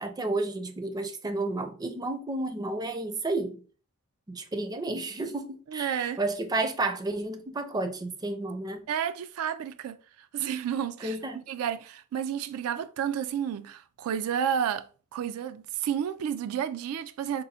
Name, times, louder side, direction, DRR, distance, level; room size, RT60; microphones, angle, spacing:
voice 1, 0.0-3.6 4.3-8.9 11.0-11.4, right 2 dB, 20° right, 0.4 m, -31 dB
voice 2, 5.7-6.2 8.9-11.2 11.5-14.9 15.1-17.4, right 8 dB, 90° right, 0.3 m, -31 dB
3.9 x 2.0 x 4.1 m
head